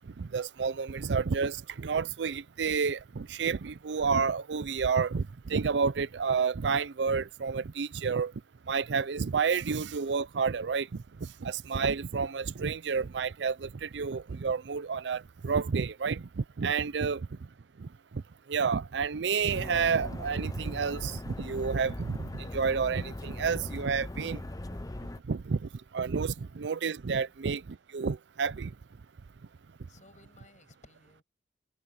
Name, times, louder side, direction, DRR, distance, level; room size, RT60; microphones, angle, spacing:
voice 1, 0.2-8.3 8.7-17.3 17.8-17.9 18.5-24.4 25.3-25.6 25.9-27.6 27.9-28.7, right 5 dB, 80° right, 0.5 m, -30 dB
sound 1, 19.5-25.2, left 1 dB, 20° left, 0.7 m, -40 dB
voice 2, 29.9-31.2, left 2 dB, 45° left, 7.4 m, -58 dB
head